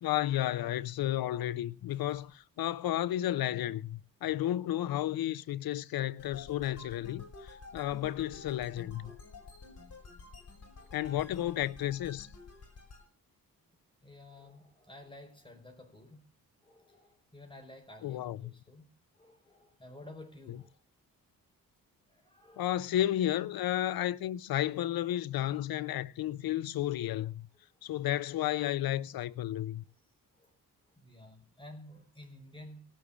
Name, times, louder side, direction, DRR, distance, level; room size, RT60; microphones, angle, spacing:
voice 1, 0.0-9.1 10.9-12.3 18.0-18.4 22.6-27.5 27.8-29.8, left 13 dB, 85° left, 0.8 m, -32 dB
voice 2, 1.9-2.2 9.0-9.5 10.7-11.3 14.0-16.3 16.6-18.9 19.1-20.8 22.1-22.8 27.5-27.9 30.0-30.1 30.3-32.8, left 1 dB, 15° left, 5.3 m, -53 dB
sound 1, 6.2-13.1, left 3 dB, 45° left, 4.7 m, -50 dB
18.5 x 6.5 x 6.9 m
cardioid pair, 80°, 35 cm